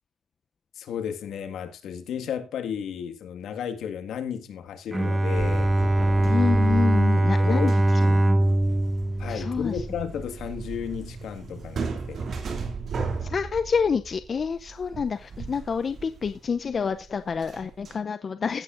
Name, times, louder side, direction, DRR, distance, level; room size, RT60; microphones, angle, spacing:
voice 1, 0.8-5.7 7.2-7.8 9.2-12.2, left 8 dB, 75° left, 1.8 m, -33 dB
Bowed string instrument, 4.9-10.2, right 1 dB, 20° right, 1.4 m, -22 dB
sound 1, 5.3-18.0, right 4 dB, 50° right, 2.8 m, -36 dB
voice 2, 6.2-7.8 8.1-8.2 9.3-9.8 13.2-18.6, left 6 dB, 45° left, 0.6 m, -28 dB
16.5 x 8.5 x 2.6 m
cardioid pair, 90°, 0 cm